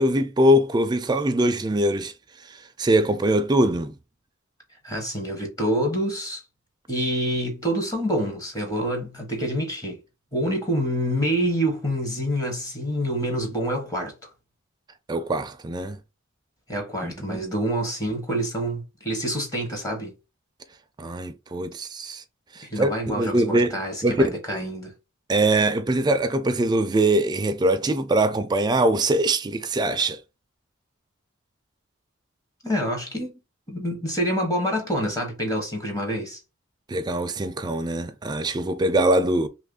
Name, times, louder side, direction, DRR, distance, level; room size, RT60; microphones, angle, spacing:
voice 1, 0.0-2.1 2.8-3.9 15.1-16.0 17.0-17.4 21.0-22.2 22.5-23.7 24.0-24.2 25.3-30.2 36.9-39.5, right 1 dB, 20° right, 0.4 m, -22 dB
voice 2, 4.8-6.4 6.9-10.0 10.3-14.3 16.7-20.1 22.7-24.9 32.6-33.3 33.7-36.4, equal, 15° left, 0.8 m, -27 dB
3.0 x 2.4 x 3.6 m
head